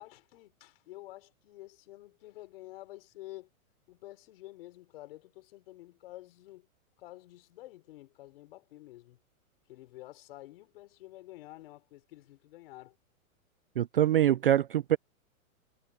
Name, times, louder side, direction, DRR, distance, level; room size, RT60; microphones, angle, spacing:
voice 1, 0.0-3.5 3.9-6.7 7.0-9.2 9.7-13.0, left 17 dB, 40° left, 5.8 m, -50 dB
voice 2, 13.8-15.0, right 11 dB, 40° right, 0.4 m, -24 dB
hypercardioid pair, 170°, 43 cm